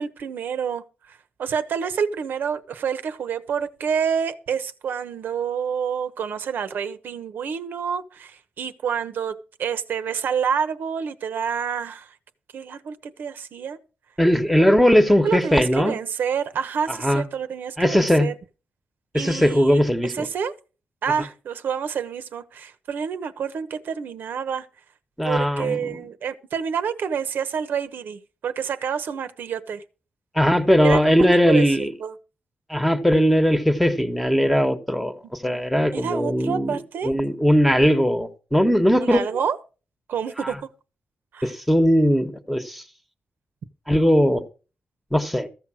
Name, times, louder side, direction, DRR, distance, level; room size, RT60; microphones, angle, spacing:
voice 1, 0.0-12.1 12.5-13.8 15.2-18.3 19.1-19.9 20.1-20.5 21.0-24.7 25.2-29.8 30.8-32.1 35.5-35.6 35.9-37.1 39.0-39.6 40.1-40.6 41.3-41.5, right 7 dB, 80° right, 1.0 m, -28 dB
voice 2, 14.2-16.0 16.9-17.2 17.8-18.3 19.1-20.3 25.2-26.0 30.3-31.9 32.7-36.8 37.0-39.2 40.4-40.6 41.4-42.8 43.9-44.4 45.1-45.5, equal, ahead, 1.2 m, -19 dB
14.5 x 6.5 x 6.3 m
wide cardioid pair, 145°, 3 cm